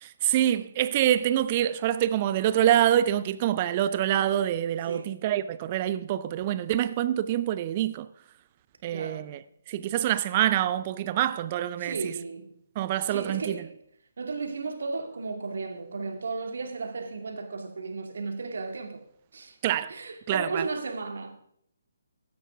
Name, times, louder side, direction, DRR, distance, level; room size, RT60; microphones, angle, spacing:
voice 1, 0.0-8.1 8.8-9.4 9.7-12.1 12.8-13.6 19.6-19.9 20.3-20.6, right 11 dB, 30° right, 0.6 m, -26 dB
voice 2, 4.8-5.2 8.9-9.4 11.8-12.6 13.1-13.8 14.2-19.0 19.3-19.6 19.9-21.4, right 4 dB, 60° right, 2.1 m, -34 dB
16.0 x 13.0 x 3.6 m
figure-of-eight pair, 140°, 0 cm